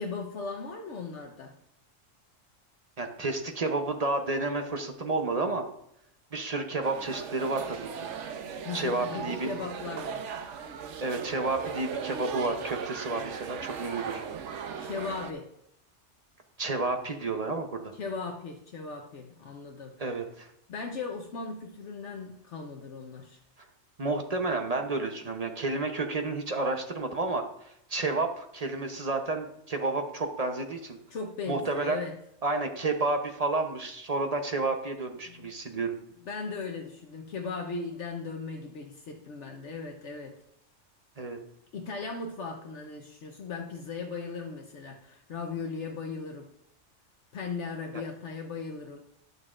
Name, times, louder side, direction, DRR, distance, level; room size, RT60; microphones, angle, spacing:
voice 1, 0.0-1.5 8.6-10.3 14.7-15.5 17.9-20.0 20.7-23.4 31.1-32.1 35.3-35.5 36.3-40.4 41.7-46.5 47.3-49.0, left 4 dB, 70° left, 2 dB, 1.1 m, -37 dB
voice 2, 3.0-5.7 6.3-8.1 8.7-9.5 11.0-14.2 16.6-17.9 20.0-20.5 24.0-31.0 31.5-32.0 32.4-36.0 41.2-41.4 47.9-48.0, right 3 dB, 35° right, 5 dB, 0.8 m, -31 dB
sound 1, 6.8-15.3, right 6 dB, 70° right, 1.0 m, -38 dB
12.0 x 6.5 x 2.5 m, 0.73 s
omnidirectional pair, 1.3 m